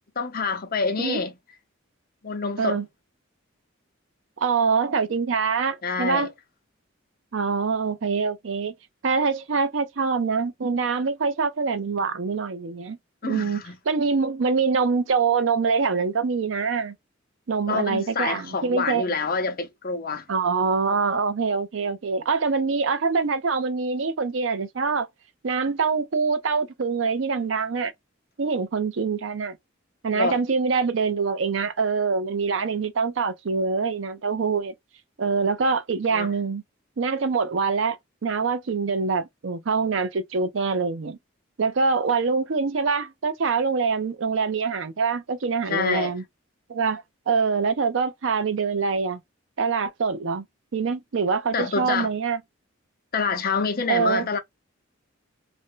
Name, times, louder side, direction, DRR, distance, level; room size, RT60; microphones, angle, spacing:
voice 1, 0.2-1.3 2.2-2.8 5.8-6.3 13.2-13.8 17.7-20.3 30.1-30.4 36.1-36.3 45.7-46.1 51.5-52.1 53.1-54.4, left 4 dB, 45° left, 0.7 m, -27 dB
voice 2, 4.4-6.3 7.3-8.7 9.0-13.0 13.2-17.0 17.5-19.1 20.3-25.1 25.4-27.9 28.4-29.6 30.0-34.7 35.2-36.6 37.0-38.0 38.2-41.2 41.6-46.2 46.7-49.2 49.6-50.4 50.7-52.4 53.9-54.3, right 5 dB, 65° right, 0.5 m, -24 dB
2.6 x 2.1 x 3.7 m
head